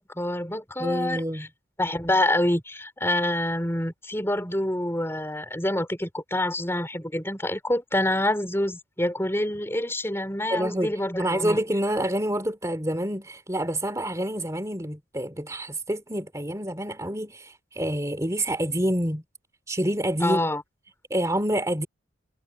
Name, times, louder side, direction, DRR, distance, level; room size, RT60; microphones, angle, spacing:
voice 1, 0.0-1.5 1.8-11.6 20.2-20.6, left 1 dB, 10° left, 4.3 m, -27 dB
voice 2, 0.8-1.5 10.5-10.9 11.2-19.2 19.7-20.4 21.1-21.9, right 1 dB, 15° right, 3.2 m, -27 dB
head